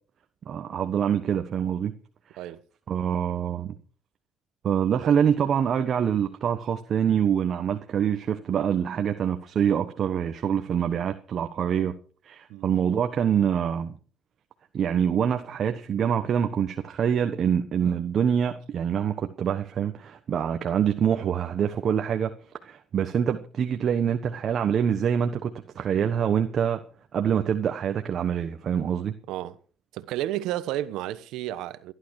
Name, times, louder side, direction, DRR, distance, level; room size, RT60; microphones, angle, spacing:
voice 1, 0.5-1.9 2.9-3.7 4.6-11.9 12.2-13.9 14.7-22.3 22.6-26.8 27.1-29.1, right 8 dB, 50° right, 1.3 m, -25 dB
voice 2, 29.9-31.9, right 14 dB, 80° right, 1.1 m, -32 dB
19.0 x 11.5 x 4.8 m
supercardioid pair, 85°, 0 cm